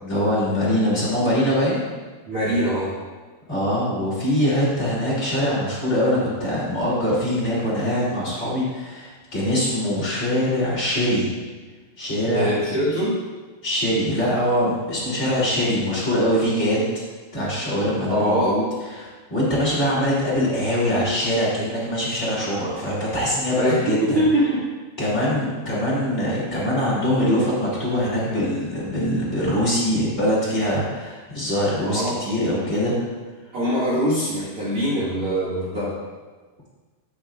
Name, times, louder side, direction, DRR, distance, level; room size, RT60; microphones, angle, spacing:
voice 1, 0.0-1.9 3.5-11.3 12.0-12.5 13.6-16.9 17.3-18.6 19.3-24.2 25.0-32.9, equal, 25° left, -8 dB, 1.6 m, -23 dB
voice 2, 2.2-3.0 12.3-13.2 18.1-18.6 23.5-24.7 31.8-32.2 33.5-36.0, equal, 55° right, -8 dB, 1.5 m, -23 dB
11.5 x 8.5 x 2.5 m, 1.4 s
omnidirectional pair, 6.0 m